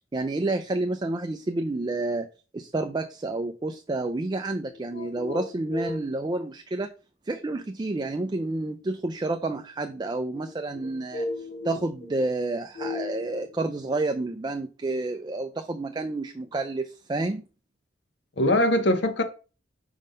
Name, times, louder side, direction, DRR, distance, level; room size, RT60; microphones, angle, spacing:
voice 1, 0.1-2.3 2.5-6.9 7.3-11.2 11.6-17.4, right 2 dB, 25° right, 0.4 m, -29 dB
voice 2, 4.9-6.0 10.8-11.8 12.8-13.5 18.4-19.2, left 1 dB, 65° left, 0.8 m, -27 dB
5.4 x 3.6 x 5.0 m
head